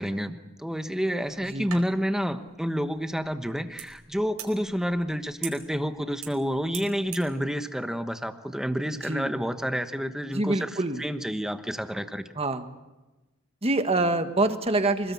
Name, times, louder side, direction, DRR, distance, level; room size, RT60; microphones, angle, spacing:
voice 1, 0.0-10.7 11.0-12.2, equal, ahead, 8 dB, 1.1 m, -29 dB
sound 1, 1.2-7.3, right 10 dB, 85° right, 4.5 m, -44 dB
voice 2, 10.3-11.0 12.3-12.7 13.6-15.1, right 2 dB, 30° right, 8 dB, 1.5 m, -26 dB
26.5 x 19.5 x 8.5 m, 1.1 s
head